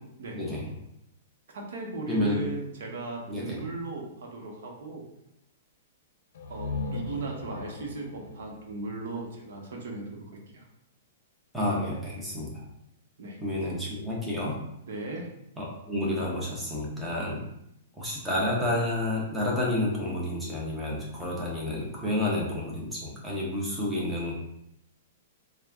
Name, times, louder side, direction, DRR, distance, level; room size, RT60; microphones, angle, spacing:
voice 1, 0.3-0.7 2.1-2.4 3.3-3.6 11.5-12.6 13.4-14.6 15.6-17.4 17.9-24.3, left 1 dB, 5° right, -5 dB, 0.9 m, -30 dB
voice 2, 1.5-5.1 6.4-10.6 13.2-13.7 14.9-15.3, right 3 dB, 70° right, 0 dB, 1.0 m, -37 dB
sound 1, 6.3-10.1, left 3 dB, 65° left, 0.6 m, -38 dB
3.9 x 2.4 x 3.5 m, 0.80 s
hypercardioid pair, 160°, 0 cm